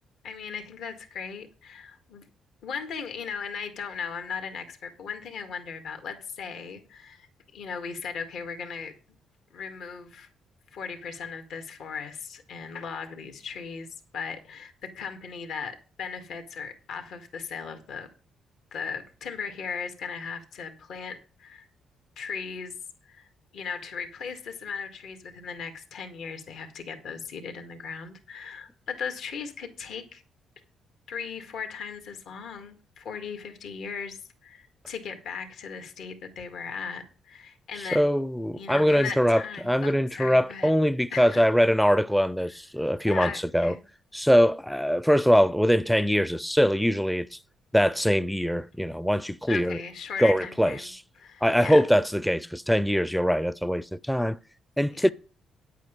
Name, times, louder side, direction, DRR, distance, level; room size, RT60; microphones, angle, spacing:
voice 1, 0.2-2.2 2.6-7.3 7.5-8.9 9.5-10.3 10.7-13.9 14.1-18.1 18.7-21.7 22.2-22.7 23.1-23.3 23.5-30.2 31.1-38.0 38.6-40.7 41.1-41.5 43.1-43.8 49.5-50.9 51.2-51.9 54.9-55.0, left 6 dB, 75° left, 1.9 m, -37 dB
voice 2, 37.9-43.7 44.1-47.4 47.7-49.8 50.2-51.0 51.4-54.4 54.8-55.1, equal, ahead, 0.4 m, -23 dB
10.5 x 8.3 x 5.2 m
cardioid pair, 90°, 0 cm